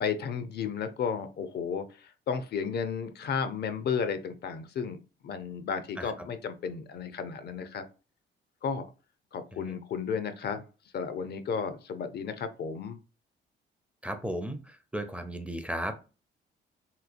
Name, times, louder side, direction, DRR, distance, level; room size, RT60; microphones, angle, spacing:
voice 1, 0.0-7.8 8.6-8.9 9.3-10.7 10.9-13.0, left 6 dB, 55° left, 10 dB, 0.5 m, -33 dB
voice 2, 14.0-16.0, equal, 5° right, 7 dB, 0.4 m, -35 dB
3.1 x 3.0 x 2.5 m, 0.33 s
cardioid pair, 90°, 20 cm